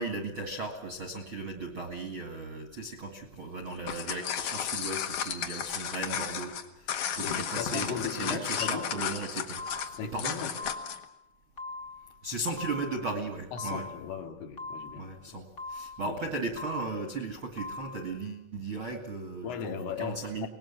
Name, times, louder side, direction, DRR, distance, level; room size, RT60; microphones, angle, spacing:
voice 1, 0.0-9.6 10.0-10.3 12.2-13.9 15.0-20.5, right 2 dB, 45° right, 6 dB, 1.7 m, -36 dB
sound 1, 3.7-11.0, left 8 dB, 55° left, 2.6 m, -34 dB
voice 2, 7.1-8.9 10.0-10.6 13.5-15.1 16.0-16.2 19.4-20.5, left 7 dB, 85° left, 4 dB, 4.9 m, -37 dB
sound 2, 7.7-8.1 8.6-9.1 9.6-10.1 10.6-11.1 11.6-12.1 12.6-13.1 13.6-14.1 14.6-15.1 15.6-16.1 16.6-17.1 17.6-18.1, left 3 dB, 25° left, 1.3 m, -42 dB
24.5 x 20.0 x 7.3 m, 0.82 s
omnidirectional pair, 5.6 m